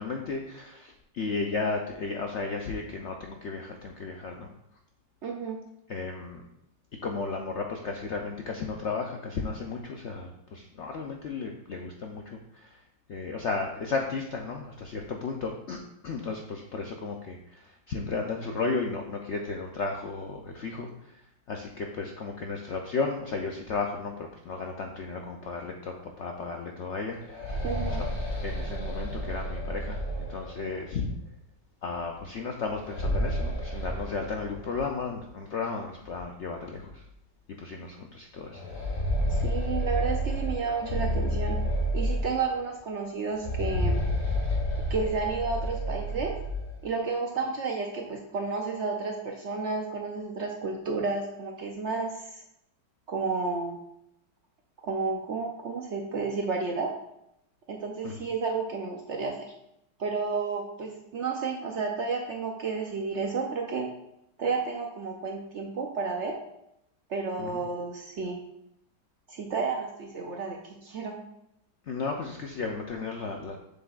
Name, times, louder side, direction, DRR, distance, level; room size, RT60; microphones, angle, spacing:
voice 1, 0.0-4.5 5.9-6.5 7.0-12.8 13.1-21.2 21.5-27.5 27.8-28.1 28.4-31.1 31.8-37.0 37.6-38.6 58.0-58.2 67.4-67.6 71.9-73.6, left 4 dB, 75° left, 2 dB, 0.6 m, -34 dB
voice 2, 5.2-5.6 27.6-28.0 39.3-41.6 41.9-44.0 44.9-46.4 46.8-52.4 53.1-53.8 54.8-56.9 57.7-59.5 60.0-63.9 64.4-66.4 67.1-68.4 69.3-71.2, right 4 dB, 70° right, 2 dB, 0.6 m, -31 dB
sound 1, 27.1-30.9 32.6-34.8 35.2-35.3 36.1-36.2 36.7-36.9 38.5-42.6 43.3-46.7, equal, 50° left, 2.3 m, -30 dB
7.5 x 6.8 x 2.4 m, 0.80 s
omnidirectional pair, 1.9 m